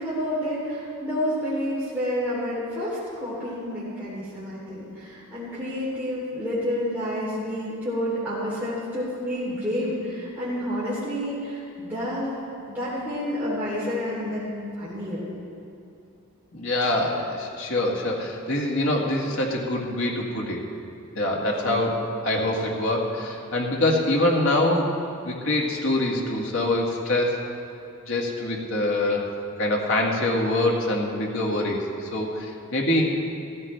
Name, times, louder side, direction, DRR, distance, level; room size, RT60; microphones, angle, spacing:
voice 1, 0.0-12.3 12.7-15.3 21.6-21.9, equal, 10° right, -10 dB, 3.1 m, -29 dB
voice 2, 16.5-20.6 21.2-24.9 25.3-27.4 28.1-29.2 29.6-31.8 32.1-33.2, left 1 dB, 75° left, -1 dB, 2.0 m, -24 dB
15.0 x 15.0 x 3.4 m, 2.7 s
head